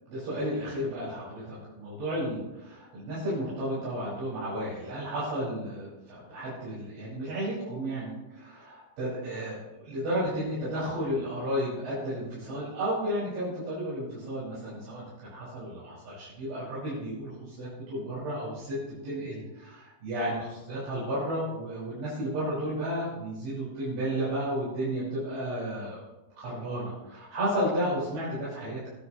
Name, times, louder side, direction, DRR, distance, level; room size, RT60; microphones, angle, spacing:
voice 1, 0.1-9.6 9.8-18.8 19.0-26.0 26.3-28.9, equal, 75° right, -11 dB, 8.3 m, -33 dB
26.5 x 10.0 x 3.1 m, 1.1 s
omnidirectional pair, 5.3 m